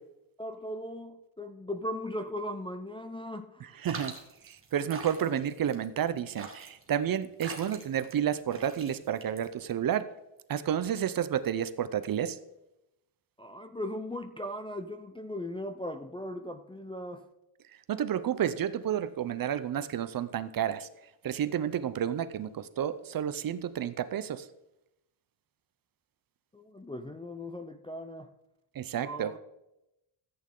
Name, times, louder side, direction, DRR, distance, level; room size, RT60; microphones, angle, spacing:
voice 1, 0.4-3.8 13.4-17.2 26.5-28.3 29.0-29.4, left 1 dB, 10° left, 6 dB, 0.4 m, -38 dB
voice 2, 3.8-4.1 4.4-10.1 10.5-12.4 17.9-20.9 21.2-24.5 28.8-29.3, right 9 dB, 45° right, 14 dB, 0.6 m, -31 dB
sound 1, 3.9-9.8, right 4 dB, 25° right, 1.7 m, -44 dB
14.0 x 8.7 x 3.7 m, 0.89 s
cardioid pair, 150°, 50 cm